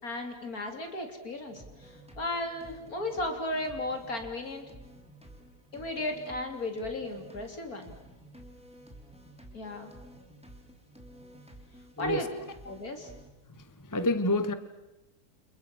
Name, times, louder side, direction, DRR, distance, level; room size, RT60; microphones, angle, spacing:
voice 1, 0.0-4.7 5.7-7.9 9.5-9.9 12.0-12.3 12.7-13.1, left 1 dB, 60° left, 5 dB, 4.1 m, -35 dB
sound 1, 1.5-13.3, right 1 dB, 5° right, 3.8 m, -52 dB
voice 2, 13.5-14.5, left 1 dB, 15° left, 12 dB, 1.0 m, -29 dB
29.5 x 29.0 x 6.3 m, 0.99 s
omnidirectional pair, 1.8 m